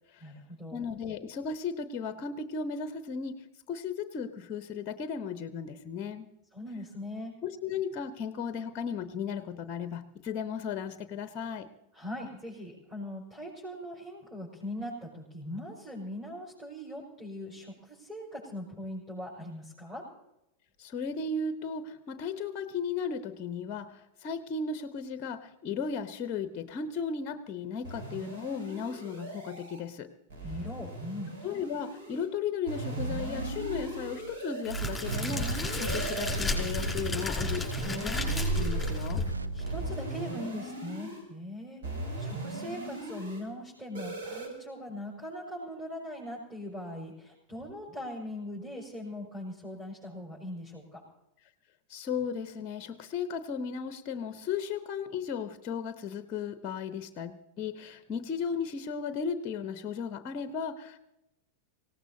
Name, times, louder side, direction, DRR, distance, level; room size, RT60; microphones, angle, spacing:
voice 1, 0.2-0.8 6.5-7.4 11.9-20.1 30.4-31.3 39.5-51.0, left 1 dB, 15° right, -5 dB, 5.9 m, -40 dB
voice 2, 0.7-6.3 7.4-11.7 20.8-30.1 31.4-39.2 51.9-61.0, left 6 dB, 35° left, 11 dB, 0.9 m, -35 dB
sound 1, 27.8-29.8 30.3-32.3 32.7-34.6 35.1-36.6 37.4-39.0 39.6-41.2 41.8-43.4 43.9-44.5, right 2 dB, 55° right, 6.8 m, -39 dB
sound 2, 32.9-34.3 34.7-37.5 38.1-39.8, right 4 dB, 80° right, 0.9 m, -35 dB
Crackle, 34.6-39.7, left 2 dB, 5° left, 5.3 m, -33 dB
25.0 x 17.5 x 2.8 m, 0.88 s
figure-of-eight pair, 90°, 0 cm